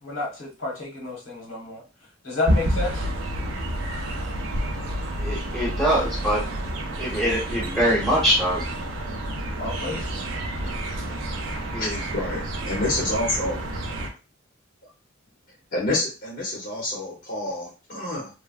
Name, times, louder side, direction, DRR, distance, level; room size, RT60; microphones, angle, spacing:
voice 1, 0.0-1.8 2.2-3.0 9.6-10.1, left 2 dB, 85° left, -2 dB, 1.4 m, -30 dB
sound 1, 2.5-14.1, right 1 dB, 75° right, 0.6 m, -29 dB
voice 2, 5.2-6.4 7.0-8.6 11.7-12.0, equal, ahead, -5 dB, 1.0 m, -23 dB
voice 3, 11.8-13.6 15.7-18.3, left 1 dB, 50° left, -4 dB, 0.8 m, -28 dB
3.1 x 2.2 x 2.4 m, 0.32 s
head